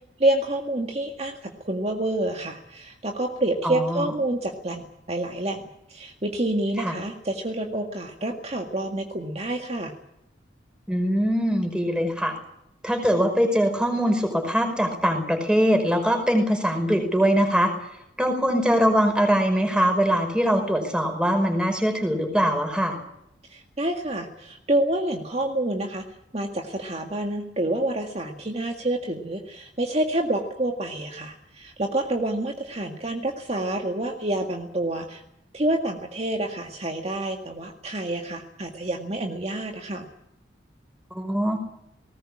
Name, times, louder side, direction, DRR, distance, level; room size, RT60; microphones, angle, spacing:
voice 1, 0.2-9.9 23.5-26.0 26.3-35.2 35.5-40.1, right 1 dB, 35° right, 3 dB, 2.0 m, -28 dB
voice 2, 3.6-4.0 6.8-6.9 10.9-12.4 12.8-17.7 18.2-23.0 41.1-41.6, equal, 5° right, 5 dB, 5.2 m, -22 dB
20.0 x 19.0 x 8.8 m, 0.80 s
head